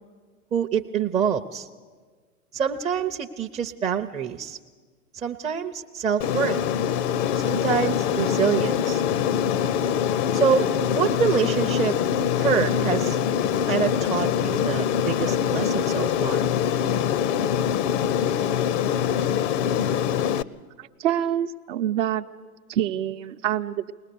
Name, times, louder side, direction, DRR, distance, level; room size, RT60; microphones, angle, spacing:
voice 1, 0.5-1.7 2.5-4.6 5.1-6.6 7.4-9.0 10.3-10.7 10.9-12.0 12.4-13.2 13.7-16.5, right 7 dB, 15° right, 2 dB, 0.6 m, -26 dB
Aircraft, 6.2-20.4, left 8 dB, 55° left, 0.7 m, -24 dB
voice 2, 20.8-22.3 22.7-23.9, right 11 dB, 55° right, 6 dB, 0.7 m, -26 dB
21.5 x 19.5 x 6.8 m, 1.5 s
figure-of-eight pair, 95°, 43 cm